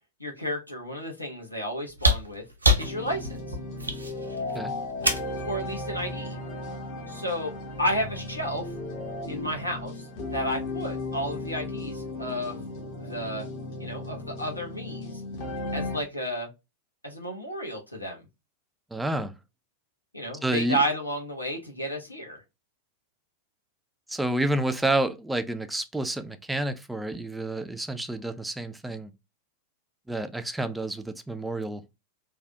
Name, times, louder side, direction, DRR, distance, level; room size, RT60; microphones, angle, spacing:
voice 1, 0.2-2.4 2.8-3.6 5.4-6.4 7.1-8.7 9.3-10.0 10.3-12.7 13.0-13.5 13.8-15.2 15.7-16.5 17.0-18.2 20.1-22.4, equal, 85° left, 0.8 m, -32 dB
sound 1, 2.0-5.4 6.8-6.9, equal, 85° right, 0.6 m, -26 dB
sound 2, 2.8-16.0, left 2 dB, 50° left, 1.0 m, -35 dB
voice 2, 18.9-19.3 20.4-20.8 24.1-29.1 30.1-31.8, right 1 dB, 5° right, 0.4 m, -29 dB
3.3 x 2.3 x 2.7 m
figure-of-eight pair, 90°, 0 cm